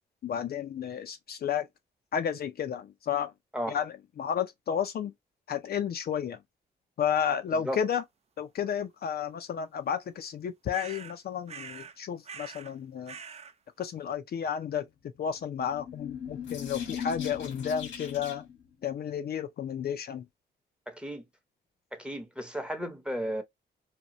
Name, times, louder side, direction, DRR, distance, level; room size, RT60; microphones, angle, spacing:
voice 1, 0.2-1.7 2.1-3.3 3.7-5.1 5.5-6.4 7.0-8.0 8.4-13.2 13.8-14.9 15.2-18.5 18.8-20.2, left 8 dB, 55° left, 0.4 m, -32 dB
sound 1, 10.7-11.2 11.5-12.0 12.2-12.7 13.1-13.5, right 6 dB, 35° right, 0.4 m, -44 dB
sound 2, 15.4-18.6, left 8 dB, 90° left, 1.4 m, -38 dB
voice 2, 20.9-21.2 21.9-23.4, equal, 5° right, 0.8 m, -34 dB
2.8 x 2.2 x 2.8 m
cardioid pair, 80°, 19 cm